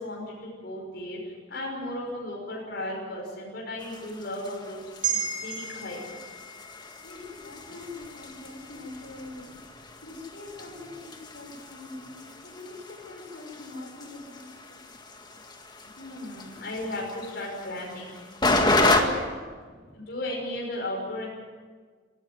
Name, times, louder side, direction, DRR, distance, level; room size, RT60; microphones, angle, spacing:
voice 1, 0.0-6.0 16.0-19.1 19.9-21.3, left 1 dB, 55° left, -2 dB, 5.8 m, -35 dB
sound 1, 3.8-19.0, left 2 dB, 25° left, 1.8 m, -32 dB
sound 2, 5.0-9.5 9.9-10.1, right 7 dB, 25° right, 2.6 m, -36 dB
voice 2, 7.0-9.6 10.0-12.2 12.4-14.9 19.6-19.9, left 2 dB, 85° left, -1 dB, 6.4 m, -43 dB
19.5 x 16.0 x 9.7 m, 1.5 s
head